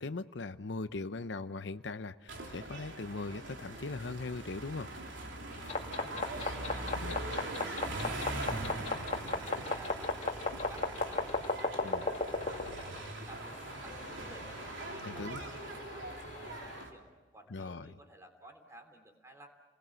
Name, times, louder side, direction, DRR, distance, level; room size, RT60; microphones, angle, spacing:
voice 1, 0.0-4.9 6.9-7.2 11.8-12.1 15.0-15.4 17.5-17.9, left 3 dB, 65° left, 12 dB, 0.7 m, -40 dB
sound 1, 2.3-16.9, right 2 dB, 75° right, 3.4 m, -42 dB
sound 2, 5.6-16.8, left 3 dB, 35° left, 2.1 m, -38 dB
voice 2, 6.0-14.6 14.9-17.1 17.3-19.5, right 1 dB, 15° right, 4 dB, 3.1 m, -55 dB
30.0 x 21.0 x 7.7 m, 1.4 s
head